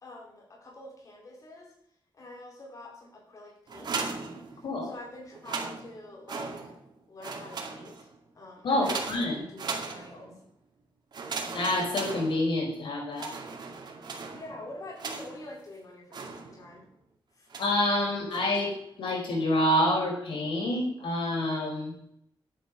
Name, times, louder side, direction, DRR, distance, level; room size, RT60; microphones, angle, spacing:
voice 1, 0.0-1.7 2.1-4.2 4.8-6.7 7.1-8.1 8.3-10.4 14.3-16.8 17.3-17.5, left 1 dB, 40° left, -2 dB, 4.0 m, -46 dB
sound 1, 3.7-4.9 5.3-6.9 7.2-8.2 8.8-10.4 11.1-12.8 13.1-15.5 16.1-16.8 17.5-17.9 18.3-18.8, right 4 dB, 55° right, 2.3 m, -38 dB
voice 2, 8.6-9.4 11.5-13.4 17.6-18.7 19.0-21.9, left 1 dB, 85° left, 0 dB, 5.2 m, -27 dB
12.0 x 10.0 x 6.3 m, 0.71 s
wide cardioid pair, 165°, 8 cm